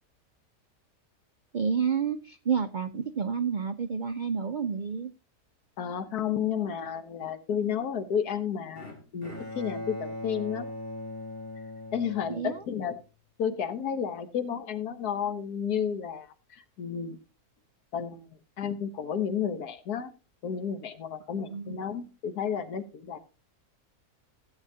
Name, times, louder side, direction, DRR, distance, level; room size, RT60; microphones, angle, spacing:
voice 1, 1.5-5.1 12.3-12.6 21.5-21.8, right 6 dB, 80° right, 9 dB, 0.4 m, -30 dB
voice 2, 5.8-10.7 11.9-13.0 13.4-17.2 17.9-18.3 18.6-20.1 20.4-23.2, left 8 dB, 90° left, 10 dB, 1.6 m, -32 dB
Bowed string instrument, 8.8-13.0, left 1 dB, 35° left, 2.9 m, -40 dB
16.0 x 8.1 x 2.7 m, 0.32 s
omnidirectional pair, 1.6 m